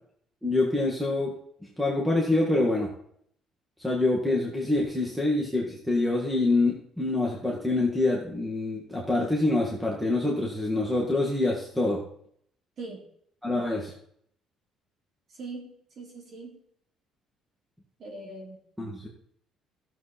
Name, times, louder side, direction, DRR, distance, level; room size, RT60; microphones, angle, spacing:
voice 1, 0.4-1.3 1.8-2.9 3.8-12.0 13.4-13.9 18.8-19.1, left 2 dB, 5° right, -2 dB, 2.0 m, -26 dB
voice 2, 15.4-16.6 18.0-18.6, right 3 dB, 45° right, -1 dB, 3.5 m, -41 dB
14.5 x 7.3 x 4.3 m, 0.68 s
cardioid pair, 120°, 0 cm